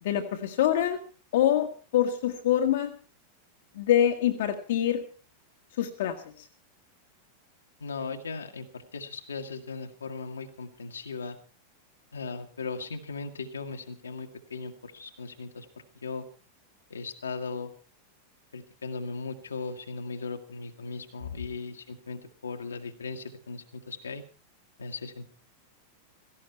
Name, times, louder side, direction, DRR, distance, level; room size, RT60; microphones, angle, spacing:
voice 1, 0.0-1.0 1.3-3.0 3.7-5.0 5.8-6.5, left 10 dB, 55° left, 5 dB, 1.5 m, -25 dB
voice 2, 7.8-11.4 12.1-16.3 16.9-17.7 18.5-24.2 24.8-25.3, left 4 dB, 70° left, 4 dB, 1.7 m, -38 dB
17.0 x 15.5 x 4.5 m, 0.40 s
figure-of-eight pair, 90°, 0 cm